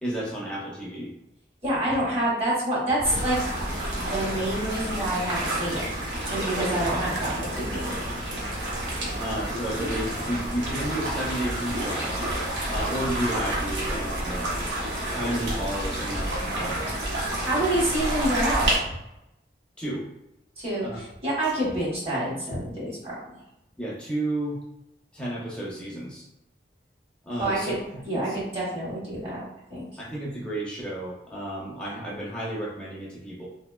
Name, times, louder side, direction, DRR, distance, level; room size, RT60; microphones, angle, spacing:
voice 1, 0.0-1.1 9.2-12.2 12.7-14.7 15.1-16.9 19.8-20.1 20.8-21.0 23.8-24.6 25.1-26.3 27.3-28.4 30.0-33.5, right 1 dB, 5° left, -6 dB, 0.6 m, -32 dB
voice 2, 1.6-3.4 3.9-5.9 6.3-7.9 17.4-18.8 20.6-23.3 27.4-27.8 28.0-29.4 29.7-29.9, right 1 dB, 35° right, -7 dB, 1.0 m, -27 dB
sound 1, 3.0-18.7, right 1 dB, 80° right, 0.8 m, -29 dB
2.9 x 2.1 x 2.2 m, 0.86 s
head